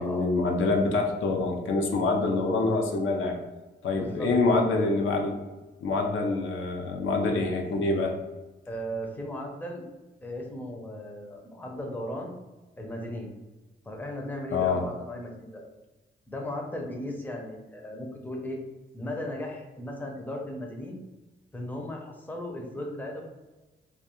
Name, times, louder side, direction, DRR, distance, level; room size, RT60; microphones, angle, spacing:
voice 1, 0.0-3.4 3.8-5.4 5.8-8.1 14.5-14.8, left 3 dB, 90° left, 2 dB, 0.5 m, -26 dB
voice 2, 3.9-4.3 8.7-9.8 10.2-12.3 12.8-13.3 13.8-15.6 16.3-18.6 18.9-21.0 21.5-23.2, left 1 dB, 10° left, 0 dB, 0.4 m, -36 dB
2.3 x 2.3 x 2.8 m, 1.1 s
wide cardioid pair, 110°, 20 cm